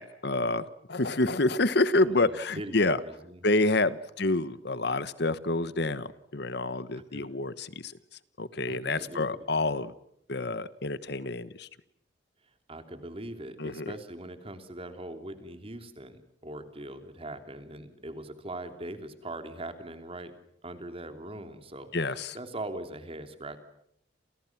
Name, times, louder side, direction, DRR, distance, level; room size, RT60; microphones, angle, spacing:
voice 1, 0.0-3.0 3.4-7.9 8.4-9.9 10.3-11.7 13.6-13.9 21.9-22.4, left 2 dB, 60° left, 15 dB, 1.2 m, -28 dB
voice 2, 2.0-3.6 6.9-7.3 8.7-9.4 12.7-20.3 20.6-23.6, right 1 dB, 30° right, 8 dB, 3.0 m, -41 dB
29.5 x 29.0 x 6.0 m, 0.74 s
head